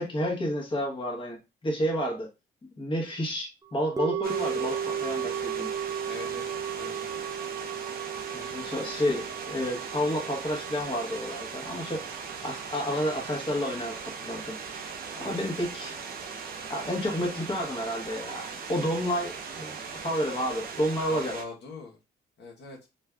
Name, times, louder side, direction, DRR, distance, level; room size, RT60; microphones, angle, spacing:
voice 1, 0.0-2.3 2.8-5.7 8.3-12.0 12.4-14.9 15.2-15.9 16.7-21.3, equal, 25° left, 0 dB, 1.1 m, -30 dB
sound 1, 4.0-14.2 14.5-14.6, right 8 dB, 20° right, 0.3 m, -35 dB
sound 2, 4.2-21.4, right 5 dB, 50° right, 0.7 m, -39 dB
voice 2, 6.1-7.3 11.8-12.1 15.1-15.3 21.1-22.0 22.4-22.8, left 3 dB, 60° left, -1 dB, 1.0 m, -43 dB
2.5 x 2.3 x 3.3 m, 0.26 s
cardioid pair, 90°, 20 cm